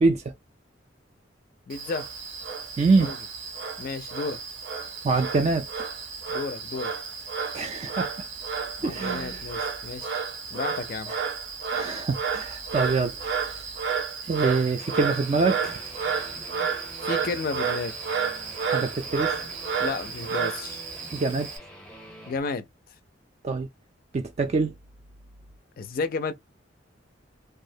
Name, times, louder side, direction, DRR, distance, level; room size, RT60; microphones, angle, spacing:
voice 1, 0.0-0.3 2.8-3.1 5.0-5.7 7.5-8.1 8.8-9.4 11.1-11.2 11.7-13.6 14.2-15.9 18.6-19.3 21.1-21.5 23.4-23.7 24.1-24.7, right 3 dB, 35° right, 0.3 m, -25 dB
voice 2, 1.7-2.1 3.0-3.2 3.8-4.4 6.3-6.9 8.8-10.2 10.5-11.1 17.0-18.0 19.8-20.8 22.3-22.7 25.8-26.3, left 4 dB, 50° left, 0.4 m, -32 dB
Frog, 1.7-21.6, right 6 dB, 65° right, 0.7 m, -31 dB
Guitar, 14.8-22.4, equal, 5° left, 0.6 m, -46 dB
2.4 x 2.0 x 2.6 m
head